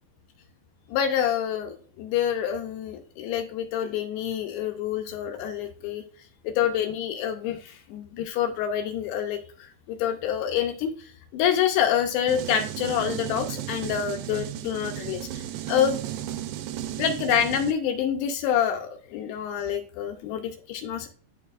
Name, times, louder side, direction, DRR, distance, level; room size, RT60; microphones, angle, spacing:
voice 1, 0.9-6.0 6.4-16.0 17.0-21.1, left 9 dB, 80° left, 5 dB, 2.6 m, -27 dB
sound 1, 12.3-17.7, right 12 dB, 85° right, 2.2 m, -34 dB
11.5 x 4.6 x 2.4 m, 0.42 s
omnidirectional pair, 5.2 m